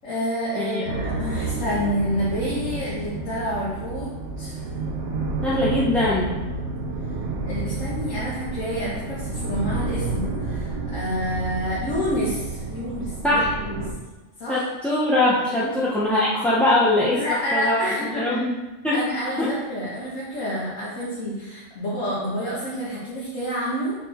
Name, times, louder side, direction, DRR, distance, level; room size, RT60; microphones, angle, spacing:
voice 1, 0.0-4.1 4.4-4.6 7.5-13.8 14.4-14.6 15.6-15.7 17.1-18.4 18.9-24.0, equal, 85° left, -9 dB, 1.9 m, -28 dB
voice 2, 0.6-0.9 5.4-6.3 13.2-13.5 14.5-18.5 18.8-19.1 19.4-19.5, left 1 dB, ahead, -7 dB, 0.6 m, -22 dB
sound 1, 0.9-13.9, right 3 dB, 65° right, 1.1 m, -30 dB
6.7 x 3.7 x 4.3 m, 1.1 s
omnidirectional pair, 1.3 m